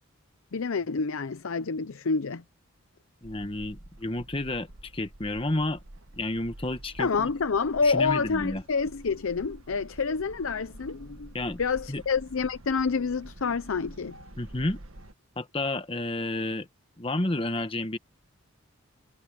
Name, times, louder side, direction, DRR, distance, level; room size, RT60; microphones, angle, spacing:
voice 1, 0.5-2.4 7.0-11.3 11.6-14.2, left 5 dB, 70° left, 0.6 m, -28 dB
voice 2, 3.2-4.7 4.9-5.8 6.2-7.3 7.8-8.6 11.3-11.6 11.9-12.0 14.4-14.8 15.4-16.7 17.0-18.0, left 2 dB, 25° left, 1.2 m, -30 dB
sound 1, 3.2-15.1, right 1 dB, 70° right, 1.6 m, -48 dB
head